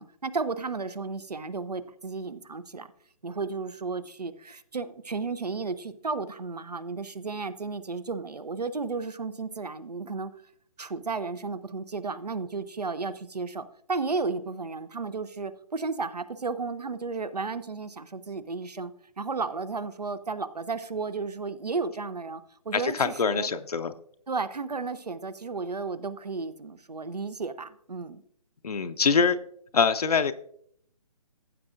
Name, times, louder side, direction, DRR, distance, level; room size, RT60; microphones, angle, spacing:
voice 1, 0.0-2.9 3.2-10.3 10.8-18.9 19.2-23.5 24.3-28.2, right 4 dB, 90° right, 14 dB, 0.8 m, -33 dB
voice 2, 22.7-23.9 28.6-29.4 29.7-30.3, left 5 dB, 75° left, 8 dB, 0.6 m, -24 dB
15.0 x 7.5 x 2.5 m, 0.67 s
figure-of-eight pair, 145°, 20 cm